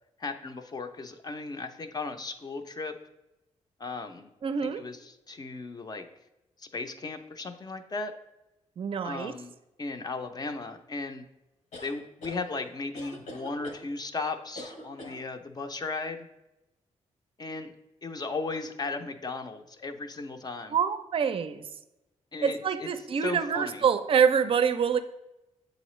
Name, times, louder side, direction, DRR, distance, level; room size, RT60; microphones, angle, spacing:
voice 1, 0.2-2.9 3.8-4.3 4.6-6.0 6.6-8.1 9.0-9.5 9.8-11.2 11.8-16.3 17.4-17.7 18.0-20.8 22.3-22.9 23.2-23.8, left 3 dB, 35° left, 7 dB, 0.5 m, -36 dB
voice 2, 4.4-4.8 8.8-9.3 20.7-21.6 22.4-25.0, right 7 dB, 50° right, 11 dB, 0.4 m, -26 dB
sound 1, 11.7-12.4 12.9-13.8 14.6-15.2, left 1 dB, 80° left, 1.1 m, -43 dB
7.7 x 3.9 x 3.1 m, 0.96 s
cardioid pair, 105°, 12 cm